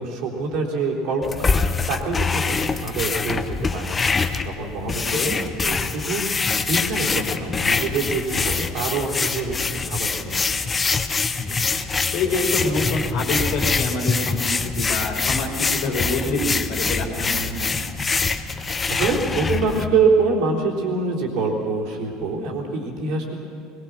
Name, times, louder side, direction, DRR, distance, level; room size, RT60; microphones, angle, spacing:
voice 1, 0.0-4.0 4.4-5.2 5.6-10.4 18.9-23.4, right 4 dB, 55° right, -1 dB, 3.7 m, -25 dB
sound 1, 1.2-19.8, left 4 dB, 25° left, 1.0 m, -24 dB
voice 2, 11.4-11.8 12.1-17.7, left 2 dB, 50° left, 0 dB, 3.1 m, -27 dB
21.5 x 21.5 x 6.3 m, 2.5 s
figure-of-eight pair, 70°, 0 cm